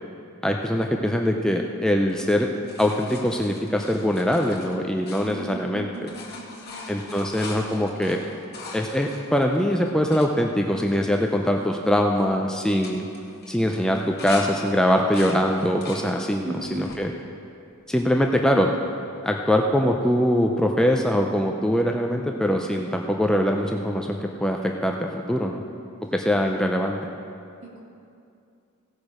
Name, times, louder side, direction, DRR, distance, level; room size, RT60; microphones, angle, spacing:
voice 1, 0.4-2.5 2.8-6.1 6.9-8.2 8.7-13.0 13.5-17.1 17.9-18.7 19.2-25.6 26.1-27.0, equal, 5° left, 1 dB, 0.4 m, -23 dB
sound 1, 2.0-5.7 5.9-10.3 10.9-11.0 11.2-11.6 11.9-12.2 12.7-14.5 14.8-16.0 16.5-17.0 17.7-18.4 20.0-20.1, left 4 dB, 45° left, 1.6 m, -41 dB
voice 2, 5.2-7.4 16.4-16.9 27.8-27.9, right 2 dB, 60° right, -3 dB, 2.3 m, -38 dB
17.0 x 6.4 x 4.8 m, 2.5 s
head